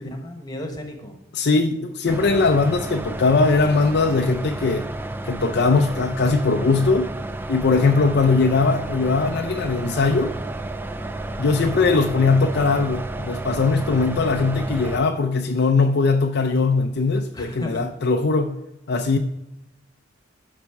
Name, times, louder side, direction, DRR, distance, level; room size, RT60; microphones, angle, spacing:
voice 1, 0.0-1.2 8.1-8.2 17.3-17.8, left 1 dB, 20° left, 1.2 m, -34 dB
voice 2, 1.3-4.9 5.2-7.1 7.5-10.4 11.4-18.5 18.9-19.2, left 3 dB, 55° left, 0.5 m, -20 dB
sound 1, 2.1-15.0, right 2 dB, 10° right, 0.3 m, -31 dB
11.5 x 4.2 x 4.7 m
head